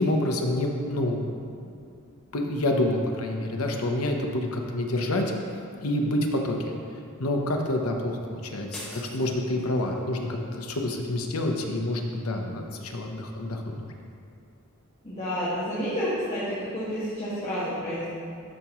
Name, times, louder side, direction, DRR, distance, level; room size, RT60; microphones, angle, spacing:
voice 1, 0.0-1.5 2.3-5.2 5.8-6.7 7.2-13.9, left 1 dB, 80° left, 2 dB, 0.9 m, -28 dB
sound 1, 8.7-10.0, left 1 dB, 5° left, 1.6 m, -43 dB
voice 2, 15.0-18.1, equal, 30° left, -10 dB, 1.4 m, -30 dB
12.5 x 4.9 x 3.1 m, 2.4 s
head